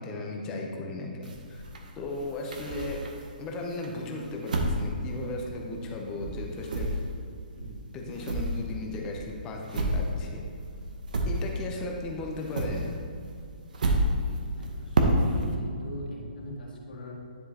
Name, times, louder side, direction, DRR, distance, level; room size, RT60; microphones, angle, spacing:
voice 1, 0.0-1.6 2.0-3.0 3.4-6.9 7.9-10.4 11.3-12.9, left 2 dB, 10° left, 0 dB, 0.5 m, -36 dB
sound 1, 1.2-3.4 3.8-5.9 6.2-11.9 12.2-15.6, right 1 dB, 55° right, 0.8 m, -30 dB
voice 2, 14.5-17.1, left 1 dB, 70° left, -2 dB, 1.6 m, -41 dB
10.0 x 4.9 x 2.8 m, 2.5 s
hypercardioid pair, 175°, 5 cm